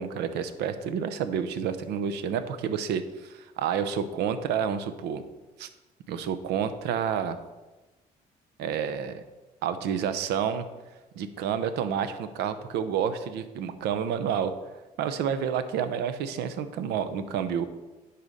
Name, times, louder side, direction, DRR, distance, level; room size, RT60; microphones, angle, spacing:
voice 1, 0.0-5.2 5.6-5.7 6.1-7.4 8.6-9.2 9.6-10.6 11.2-14.5 15.0-17.7, right 8 dB, 80° right, 10 dB, 0.7 m, -29 dB
10.5 x 4.3 x 6.4 m, 1.1 s
cardioid pair, 110°, 17 cm